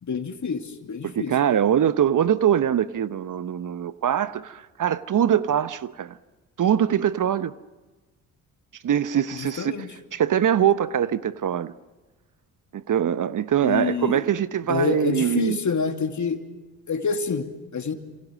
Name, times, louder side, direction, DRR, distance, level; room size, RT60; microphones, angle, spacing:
voice 1, 0.0-1.3 9.3-9.9 13.6-14.2 14.7-16.4 16.9-17.9, left 5 dB, 45° left, 2.7 m, -27 dB
voice 2, 1.0-6.2 6.6-7.5 8.8-9.8 10.1-11.7 12.7-15.6, right 9 dB, 50° right, 1.0 m, -23 dB
28.0 x 27.5 x 6.5 m
hypercardioid pair, 45°, 41 cm